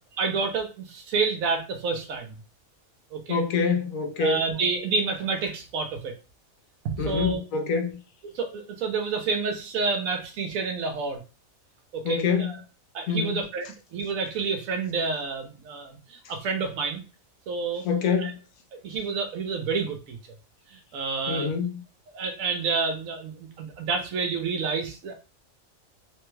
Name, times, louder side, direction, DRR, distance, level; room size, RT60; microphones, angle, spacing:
voice 1, 0.2-2.4 3.1-3.4 4.2-6.1 6.8-7.4 8.3-11.2 11.9-12.6 12.9-13.7 13.9-17.0 17.5-17.8 18.2-18.3 18.8-20.2 20.7-21.5 22.1-25.1, right 4 dB, 75° right, 1.1 m, -29 dB
voice 2, 3.3-4.4 7.0-8.0 12.0-12.5 13.1-13.4 17.8-18.4 21.3-21.8, left 5 dB, 75° left, 1.0 m, -26 dB
3.2 x 2.3 x 3.1 m
omnidirectional pair, 1.5 m